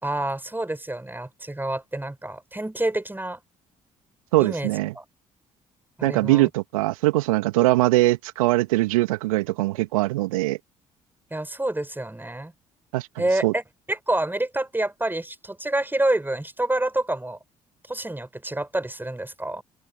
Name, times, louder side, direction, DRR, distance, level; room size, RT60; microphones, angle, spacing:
voice 1, 0.0-3.4 4.4-4.7 4.9-5.0 6.0-6.5 11.3-12.5 13.2-13.6 13.9-17.4 17.9-19.6, right 1 dB, 10° right, 6.3 m, -27 dB
voice 2, 4.3-4.9 6.0-10.6 12.9-13.1 13.4-13.5, right 19 dB, 75° right, 2.0 m, -21 dB
open air
figure-of-eight pair, 45°, 18 cm